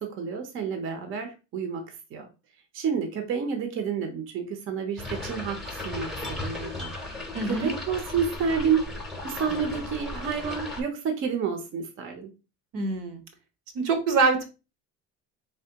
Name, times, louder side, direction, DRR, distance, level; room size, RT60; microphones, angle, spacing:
voice 1, 0.0-1.8 2.1-2.3 2.7-6.9 7.4-8.9 9.2-12.3, right 6 dB, 40° right, 5 dB, 0.7 m, -29 dB
sound 1, 5.0-10.8, left 2 dB, ahead, 0.7 m, -36 dB
voice 2, 7.3-7.7 12.7-13.2 13.7-14.5, right 4 dB, 75° right, 6 dB, 1.2 m, -24 dB
4.2 x 3.4 x 2.8 m, 0.29 s
cardioid pair, 165°, 32 cm